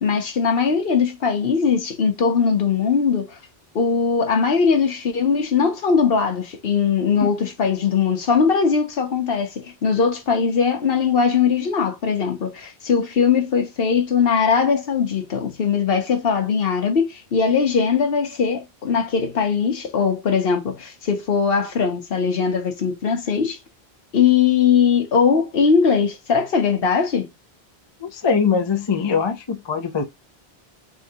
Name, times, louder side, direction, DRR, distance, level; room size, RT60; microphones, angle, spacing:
voice 1, 0.0-3.3 3.7-23.6 24.1-27.3, left 6 dB, 65° left, 1.0 m, -20 dB
voice 2, 28.0-30.0, left 6 dB, 35° left, 0.6 m, -22 dB
3.7 x 3.6 x 2.8 m
omnidirectional pair, 1.0 m